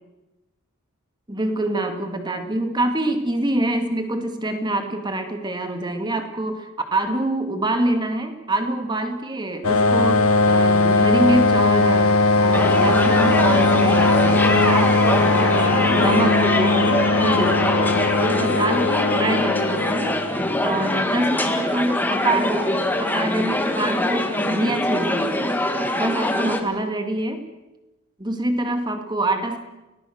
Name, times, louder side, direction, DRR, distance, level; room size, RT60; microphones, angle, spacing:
voice 1, 1.3-15.0 15.3-17.6 18.2-20.2 20.6-25.5 25.7-27.4 28.2-29.6, right 1 dB, 20° right, 6 dB, 2.3 m, -25 dB
sound 1, 9.6-21.0, left 2 dB, 80° left, 1.8 m, -19 dB
sound 2, 12.5-26.6, left 1 dB, 10° left, 1.8 m, -23 dB
29.5 x 19.0 x 6.5 m, 1.0 s
head